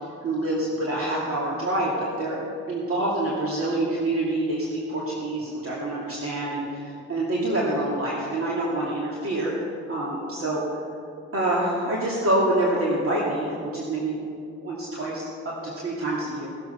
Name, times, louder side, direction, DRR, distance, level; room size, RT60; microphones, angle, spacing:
voice 1, 0.2-2.4 2.7-9.5 9.9-10.6 11.3-14.2 14.6-15.3 15.6-16.5, right 1 dB, 45° right, -5 dB, 2.5 m, -26 dB
18.5 x 7.8 x 5.7 m, 2.5 s
cardioid pair, 90°, 30 cm